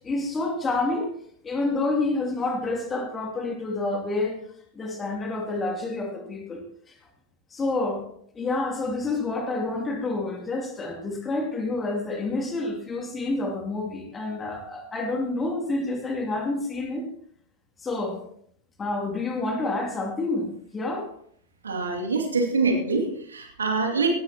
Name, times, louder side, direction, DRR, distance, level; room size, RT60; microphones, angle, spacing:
voice 1, 0.0-1.1 1.4-4.4 4.7-6.6 7.5-8.0 8.3-17.1 17.8-18.2 18.8-21.1, left 2 dB, 20° left, 2 dB, 2.6 m, -28 dB
voice 2, 21.6-24.1, right 4 dB, 70° right, 3 dB, 2.6 m, -25 dB
17.0 x 12.5 x 2.9 m, 0.64 s
figure-of-eight pair, 90°, 0 cm